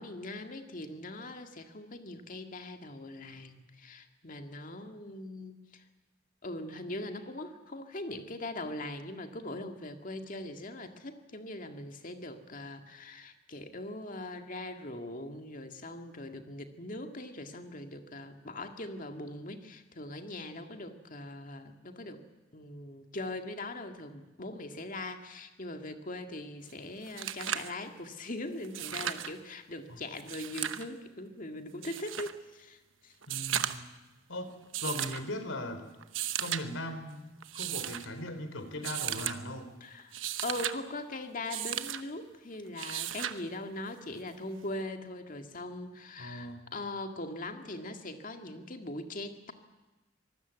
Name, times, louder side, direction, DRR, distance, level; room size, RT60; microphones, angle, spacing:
voice 1, 0.0-5.8 6.4-22.2 22.5-33.1 39.8-49.5, left 2 dB, 45° left, 6 dB, 2.1 m, -41 dB
sound 1, 26.7-26.8 27.0-27.7 28.6-29.3 30.2-30.9 31.8-32.3 33.2-33.9 34.7-35.2 36.0-36.6 37.4-38.0 38.8-39.4 40.0-40.8 41.5-42.0 42.8-43.4 44.8-44.9, right 11 dB, 85° right, 1.1 m, -35 dB
voice 2, 33.3-33.9 34.3-34.5 34.8-35.8 36.4-39.7 46.2-46.6, left 1 dB, 90° left, 9 dB, 3.3 m, -39 dB
25.5 x 19.0 x 8.2 m, 1.1 s
head